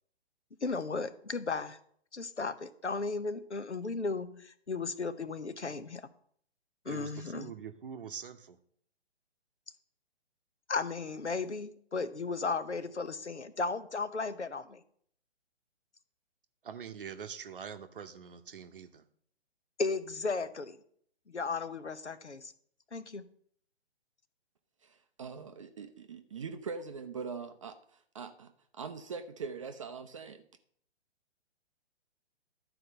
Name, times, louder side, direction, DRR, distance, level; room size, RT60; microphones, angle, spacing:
voice 1, 0.6-1.8 2.1-6.1 6.8-7.5 10.7-14.8 19.8-20.8 21.3-22.5 22.9-23.3, left 4 dB, 80° left, 13 dB, 0.9 m, -35 dB
voice 2, 6.9-8.6 16.6-19.1, right 7 dB, 50° right, 8 dB, 0.8 m, -44 dB
voice 3, 24.8-27.7 28.1-30.4, right 5 dB, 30° right, 8 dB, 0.5 m, -42 dB
12.0 x 4.6 x 6.6 m, 0.63 s
figure-of-eight pair, 130°, 34 cm